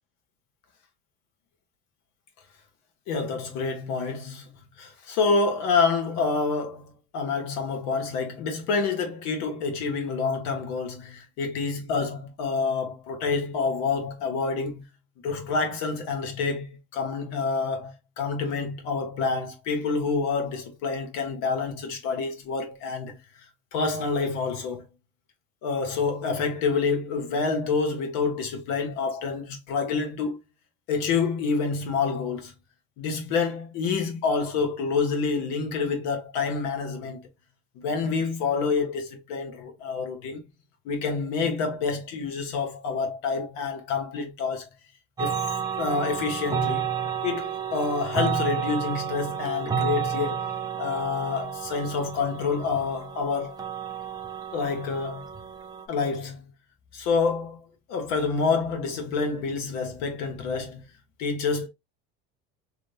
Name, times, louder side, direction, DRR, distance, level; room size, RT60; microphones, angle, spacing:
voice 1, 3.1-14.9 15.2-23.2 23.7-24.8 25.6-30.4 30.9-32.5 33.0-37.3 37.7-40.4 40.8-44.7 45.2-45.4 45.8-46.9 47.2-50.5 50.8-53.6 54.5-55.3 55.9-56.5 56.9-57.6 57.9-60.8 61.2-61.7, left 4 dB, 60° left, 1.3 m, -28 dB
sound 1, 45.2-55.8, right 7 dB, 15° right, 0.3 m, -31 dB
3.2 x 2.7 x 3.2 m
cardioid pair, 165°, 31 cm